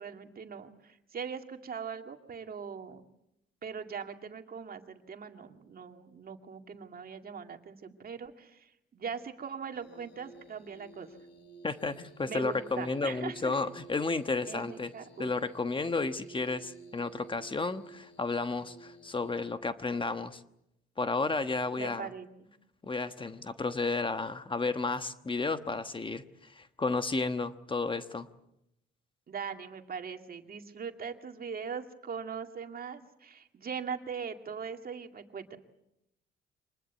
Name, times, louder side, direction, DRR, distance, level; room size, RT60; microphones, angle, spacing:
voice 1, 0.0-3.0 3.6-11.1 12.3-13.5 14.5-15.3 21.8-22.5 29.3-35.6, right 6 dB, 50° right, 6 dB, 2.2 m, -41 dB
sound 1, 9.7-19.6, right 4 dB, 60° left, 3.5 m, -52 dB
voice 2, 11.6-14.9 15.2-20.4 21.0-22.1 22.8-28.3, left 3 dB, 25° left, 10 dB, 1.2 m, -32 dB
25.0 x 20.0 x 8.2 m, 0.84 s
cardioid pair, 90°, 20 cm